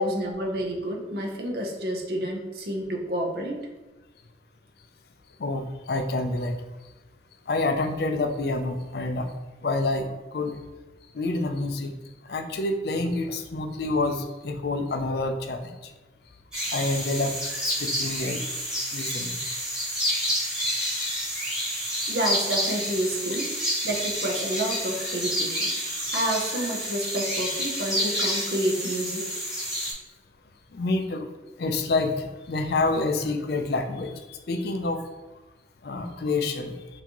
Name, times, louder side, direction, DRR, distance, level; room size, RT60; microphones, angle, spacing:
voice 1, 0.0-3.6 22.1-23.5 23.8-25.7 26.1-29.2, right 1 dB, 55° right, 0 dB, 0.8 m, -29 dB
voice 2, 5.4-6.6 7.5-9.3 9.6-10.6 11.1-11.9 12.3-15.7 16.7-17.4 17.6-18.4 18.9-19.4 23.3-23.4 30.7-31.3 31.6-35.0 35.8-36.7, left 2 dB, 55° left, 6 dB, 0.4 m, -27 dB
sound 1, 16.5-29.9, equal, 5° right, 1.4 m, -29 dB
5.7 x 2.7 x 3.0 m, 1.2 s
head